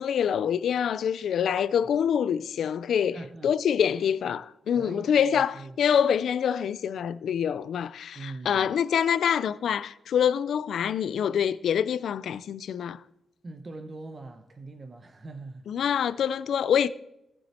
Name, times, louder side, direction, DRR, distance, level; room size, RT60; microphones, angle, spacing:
voice 1, 0.0-13.0 15.7-16.9, left 8 dB, 70° left, 0.5 m, -26 dB
voice 2, 3.1-3.5 4.7-5.8 8.1-8.7 13.4-15.7, right 2 dB, 30° right, 0.9 m, -42 dB
17.5 x 7.1 x 4.4 m
cardioid pair, 120°, 0 cm